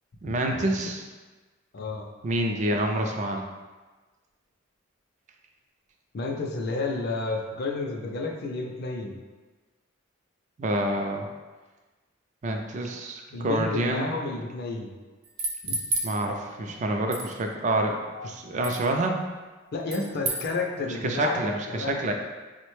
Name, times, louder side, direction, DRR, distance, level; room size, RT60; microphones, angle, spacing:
voice 1, 0.2-1.0 2.2-3.5 10.6-11.3 12.4-14.1 16.0-18.0 18.2-19.2 20.9-22.1, right 1 dB, 35° right, 3 dB, 0.3 m, -27 dB
voice 2, 1.7-2.1 6.1-9.2 13.3-14.9 15.6-15.8 18.1-18.3 19.7-22.0, left 3 dB, 50° left, 1 dB, 0.4 m, -31 dB
sound 1, 15.2-16.1 17.1-17.3 18.6-18.8 19.9-20.5, right 2 dB, 85° right, 0.6 m, -30 dB
4.8 x 2.1 x 3.1 m, 1.3 s
head